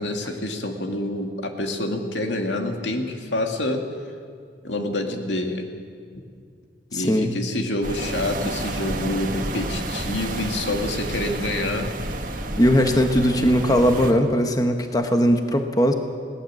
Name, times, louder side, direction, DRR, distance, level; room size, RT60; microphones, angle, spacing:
voice 1, 0.0-3.8 4.6-5.7 6.9-11.9, left 1 dB, 85° left, 3 dB, 2.2 m, -27 dB
voice 2, 6.9-7.4 12.6-15.9, equal, 20° left, 5 dB, 1.1 m, -19 dB
sound 1, 7.8-14.1, right 2 dB, 45° right, 1.6 m, -30 dB
21.0 x 17.5 x 7.6 m, 2.2 s
head